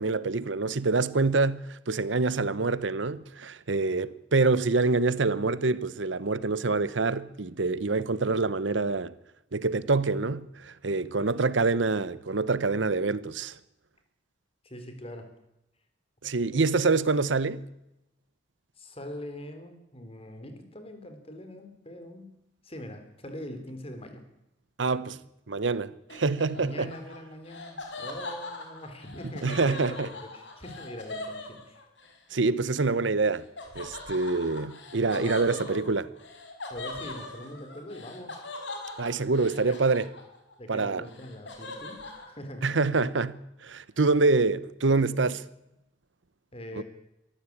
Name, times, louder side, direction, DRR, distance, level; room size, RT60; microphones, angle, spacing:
voice 1, 0.0-9.1 9.5-13.6 16.2-17.7 24.8-25.2 25.5-26.9 29.2-30.1 32.3-33.4 33.7-36.0 39.0-40.1 40.7-41.0 42.6-45.5 46.8-46.9, right 3 dB, 85° right, 0.9 m, -26 dB
voice 2, 10.9-11.5 14.6-15.3 16.5-16.7 18.8-22.3 22.6-24.3 26.5-31.8 35.1-35.9 36.7-38.5 39.6-40.1 40.6-42.8 46.5-46.8, left 1 dB, 30° left, 3.7 m, -42 dB
Laughter, 26.1-32.1 33.6-40.5 40.8-42.3, left 2 dB, 75° left, 5.1 m, -41 dB
23.0 x 14.5 x 8.7 m
head